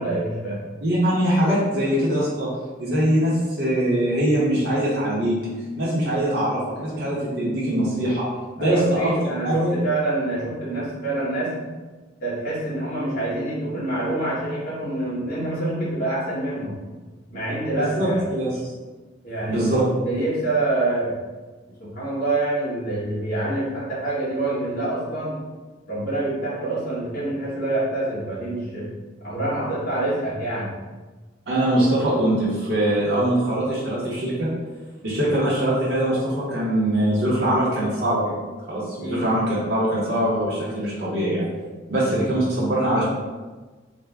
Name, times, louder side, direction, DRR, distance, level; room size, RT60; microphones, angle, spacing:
voice 1, 0.0-0.6 8.6-11.5 12.2-16.8 17.3-18.2 19.2-19.8 20.0-21.2 21.8-25.4 25.9-28.9 29.2-30.7 39.0-39.3, right 2 dB, 50° left, -9 dB, 1.3 m, -26 dB
voice 2, 0.8-2.5 2.8-5.4 5.8-8.3 8.6-9.1 9.4-9.8 17.7-18.6 19.5-19.9 31.5-34.5 35.0-38.3 38.7-41.5 41.9-43.0, right 1 dB, 60° right, -8 dB, 0.8 m, -22 dB
3.3 x 2.0 x 3.4 m, 1.3 s
head